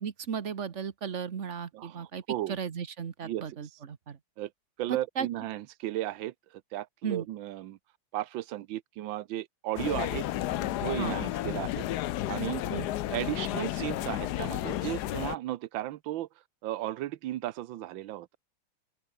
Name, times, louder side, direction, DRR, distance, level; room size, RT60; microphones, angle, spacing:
voice 1, 0.0-2.2 2.5-4.2 4.9-5.3 7.0-7.2 11.0-11.1 12.6-12.9, right 7 dB, 40° right, 1.2 m, -35 dB
voice 2, 1.7-2.6 3.2-3.6 4.4-4.5 4.8-7.8 8.1-10.3 10.8-11.9 12.3-12.6 13.1-16.3 16.6-18.4, right 14 dB, 70° right, 1.4 m, -35 dB
sound 1, 9.8-15.4, left 14 dB, 70° left, 0.9 m, -32 dB
open air
omnidirectional pair, 2.4 m